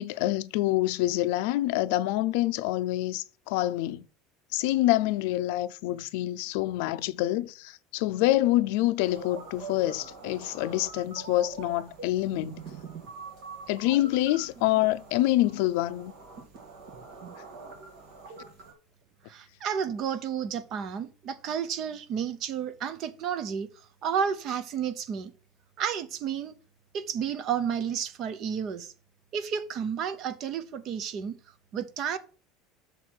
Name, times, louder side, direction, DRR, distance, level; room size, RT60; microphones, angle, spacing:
voice 1, 0.0-4.1 4.5-12.6 13.7-16.1, left 16 dB, 65° left, 0.5 m, -26 dB
sound 1, 9.0-18.7, right 5 dB, 50° right, 2.5 m, -45 dB
voice 2, 19.3-25.3 25.8-26.6 26.9-28.9 29.3-31.3 31.7-32.2, right 7 dB, 35° right, 0.7 m, -31 dB
6.6 x 4.6 x 6.0 m
cardioid pair, 180°, 0 cm